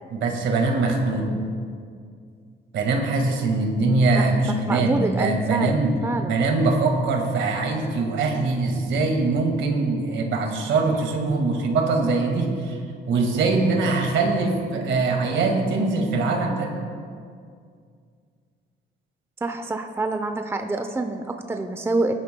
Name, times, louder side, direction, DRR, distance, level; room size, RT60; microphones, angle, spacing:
voice 1, 0.1-1.3 2.7-5.9 6.3-12.8 13.1-16.7, right 3 dB, 75° right, 2 dB, 1.9 m, -22 dB
voice 2, 4.2-5.8 6.0-6.4 19.4-22.1, right 2 dB, 10° right, 6 dB, 0.6 m, -27 dB
18.5 x 10.5 x 2.3 m, 2.2 s
cardioid pair, 90°, 20 cm